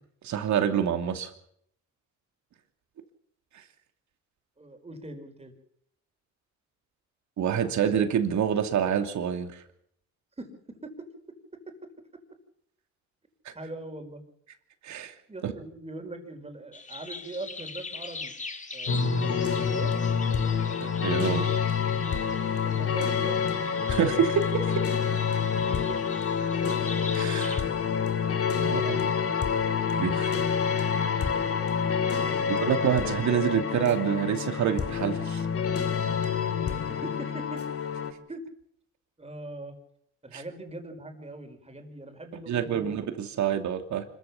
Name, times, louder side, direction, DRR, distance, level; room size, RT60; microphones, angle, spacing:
voice 1, 0.2-1.3 7.4-9.5 14.8-15.1 15.4-15.5 20.8-21.5 23.9-24.7 27.1-27.7 28.6-29.0 30.0-30.4 30.7-31.2 32.6-35.4 40.3-40.4 42.5-44.0, right 8 dB, 70° right, 7 dB, 2.9 m, -27 dB
voice 2, 4.6-5.5 10.4-10.5 10.8-10.9 13.6-14.2 15.3-18.3 18.7-19.9 22.7-23.5 28.6-28.7 31.6-31.7 32.3-32.6 36.8-37.6 38.3-38.4 39.2-39.8 40.2-42.9, right 2 dB, 20° right, 5 dB, 5.2 m, -41 dB
sound 1, 16.7-27.6, left 4 dB, 25° left, 2.1 m, -42 dB
sound 2, 18.9-38.1, left 6 dB, 50° left, 2.3 m, -27 dB
26.0 x 14.5 x 7.3 m, 0.69 s
cardioid pair, 90°, 30 cm